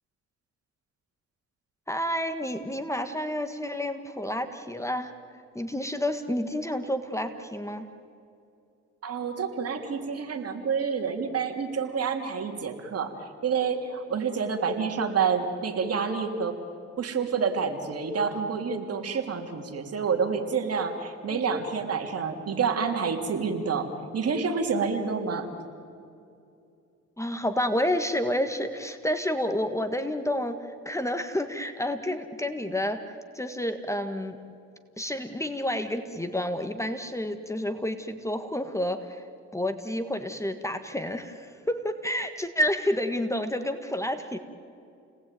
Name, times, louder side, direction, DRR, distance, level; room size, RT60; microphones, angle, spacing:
voice 1, 1.9-5.1 5.5-7.9 21.2-21.4 27.2-34.4 35.0-39.2 39.5-44.4, left 1 dB, 10° left, 8 dB, 1.7 m, -30 dB
voice 2, 9.0-16.6 17.0-25.5, right 5 dB, 50° right, 4 dB, 3.2 m, -28 dB
29.5 x 19.5 x 9.3 m, 2.5 s
cardioid pair, 90°, 30 cm